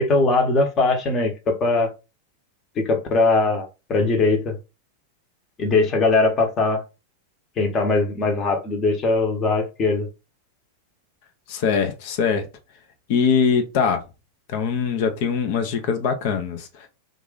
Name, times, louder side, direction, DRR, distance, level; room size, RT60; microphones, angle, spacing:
voice 1, 0.0-1.9 2.8-4.6 5.6-6.8 7.6-10.1, left 3 dB, 30° left, 1.1 m, -20 dB
voice 2, 11.5-12.4 13.1-14.0 14.5-16.9, left 6 dB, 50° left, 0.7 m, -22 dB
2.9 x 2.5 x 3.8 m
figure-of-eight pair, 90°, 0 cm